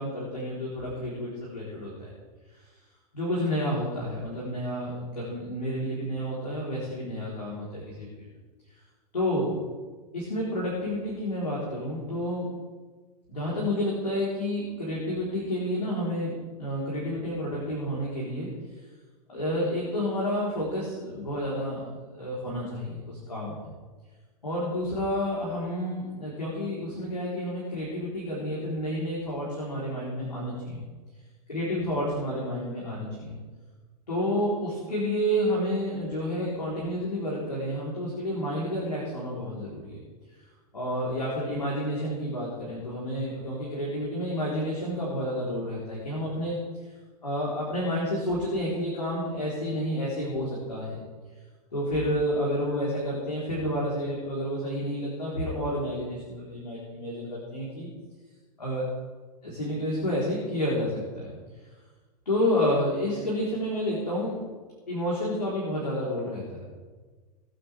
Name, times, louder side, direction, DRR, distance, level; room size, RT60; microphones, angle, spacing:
voice 1, 0.0-2.1 3.1-8.3 9.1-9.6 10.1-12.5 13.3-16.3 16.6-18.5 19.3-23.7 24.4-30.8 31.5-33.4 34.1-40.0 40.7-46.6 47.2-51.0 51.7-57.9 58.6-58.9 59.4-61.3 62.3-64.4 64.9-66.7, equal, 80° left, -6 dB, 3.9 m, -30 dB
21.5 x 8.8 x 3.5 m, 1.4 s
figure-of-eight pair, 100°, 21 cm